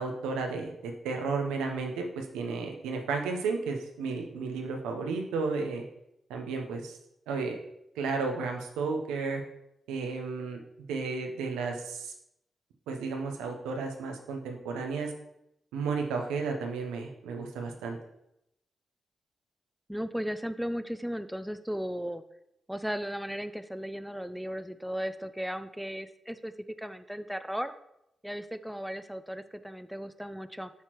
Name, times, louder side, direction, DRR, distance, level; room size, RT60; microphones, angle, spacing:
voice 1, 0.0-5.8 6.3-7.0 7.3-7.6 8.0-9.4 9.9-10.6 10.9-12.1 12.9-15.1 15.7-18.0, right 4 dB, 85° right, 3 dB, 0.7 m, -33 dB
voice 2, 19.9-22.2 22.7-26.5 26.8-27.7 28.2-30.7, equal, 5° right, 11 dB, 0.4 m, -36 dB
8.1 x 4.4 x 3.0 m, 0.81 s
hypercardioid pair, 40°, 0 cm